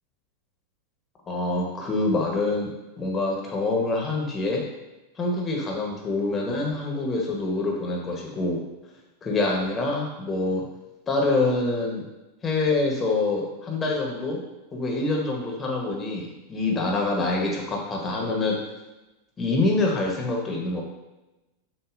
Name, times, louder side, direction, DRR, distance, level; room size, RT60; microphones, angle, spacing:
voice 1, 1.3-2.7 3.0-4.6 5.2-8.6 9.2-10.7 11.1-12.0 12.4-14.4 14.7-18.6 19.4-20.8, left 2 dB, 25° left, -1 dB, 1.0 m, -25 dB
6.5 x 2.4 x 2.5 m, 1.0 s
figure-of-eight pair, 95°, 0 cm